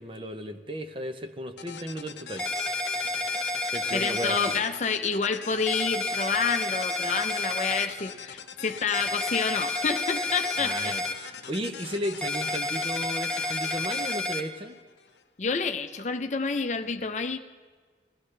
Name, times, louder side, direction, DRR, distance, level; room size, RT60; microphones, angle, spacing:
voice 1, 0.0-2.5 3.7-4.6 10.6-11.0 11.5-14.8, equal, 30° right, 7 dB, 0.8 m, -34 dB
sound 1, 1.6-15.2, left 7 dB, 80° left, 0.9 m, -43 dB
sound 2, 2.4-4.6 5.7-7.9 8.9-11.1 12.2-14.4, left 2 dB, 5° left, 0.8 m, -30 dB
voice 2, 3.9-10.9 15.4-17.4, left 5 dB, 40° left, 7 dB, 0.6 m, -29 dB
20.0 x 15.0 x 3.3 m, 1.5 s
head